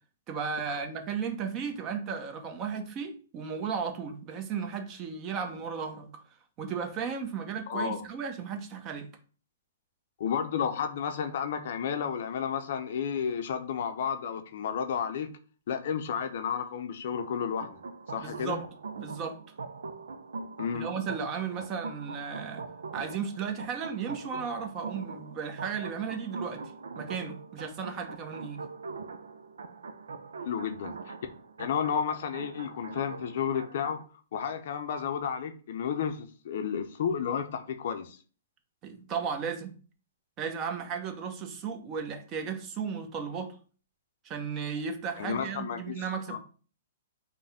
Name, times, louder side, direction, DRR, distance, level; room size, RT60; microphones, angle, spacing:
voice 1, 0.3-6.2 6.6-9.1 18.2-18.6 19.0-19.4 20.7-22.6 22.9-26.6 26.9-28.6 38.8-39.7 40.4-43.5 44.2-46.4, right 6 dB, 30° right, 0.9 m, -35 dB
voice 2, 7.7-8.0 10.2-15.3 15.7-17.8 18.1-18.6 20.6-20.9 30.4-31.1 31.6-34.0 34.3-38.2 45.2-46.4, left 7 dB, 55° left, 0.6 m, -32 dB
sound 1, 17.2-34.0, right 4 dB, 75° right, 0.4 m, -42 dB
5.4 x 2.2 x 3.5 m
figure-of-eight pair, 120°, 0 cm